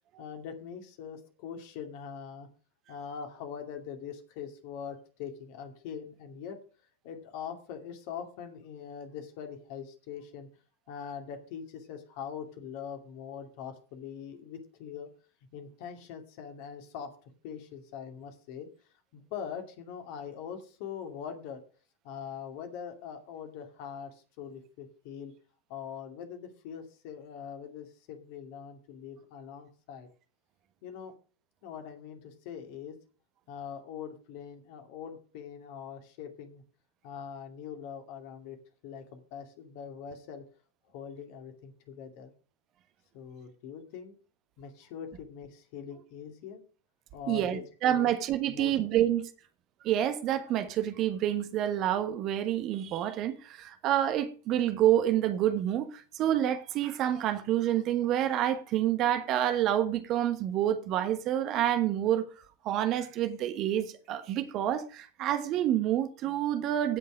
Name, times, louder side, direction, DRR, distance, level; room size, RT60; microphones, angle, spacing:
voice 1, 0.2-2.5 2.9-6.6 7.0-10.5 10.9-15.1 15.5-17.1 17.4-18.7 19.1-21.6 22.0-25.3 25.7-30.1 30.8-31.1 31.6-33.0 33.5-36.6 37.0-38.6 38.8-40.4 40.9-42.3 43.1-44.1 44.6-46.6 47.1-47.6 47.9-48.1 48.5-49.0, left 7 dB, 45° left, 2.5 m, -42 dB
voice 2, 47.3-49.2 49.8-62.3 62.6-67.0, right 11 dB, 35° right, 1.3 m, -28 dB
16.0 x 5.5 x 4.9 m
figure-of-eight pair, 90°, 0 cm